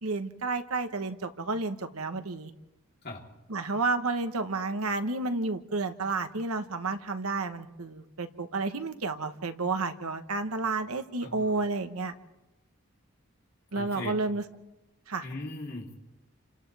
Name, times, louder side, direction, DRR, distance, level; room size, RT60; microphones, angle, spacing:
voice 1, 0.0-2.5 3.5-12.1 13.7-14.4 15.1-15.2, right 3 dB, 90° right, 9 dB, 1.3 m, -31 dB
voice 2, 11.2-11.5 13.7-14.2 15.2-16.0, left 2 dB, 45° left, -2 dB, 3.5 m, -39 dB
30.0 x 26.0 x 3.5 m, 1.0 s
head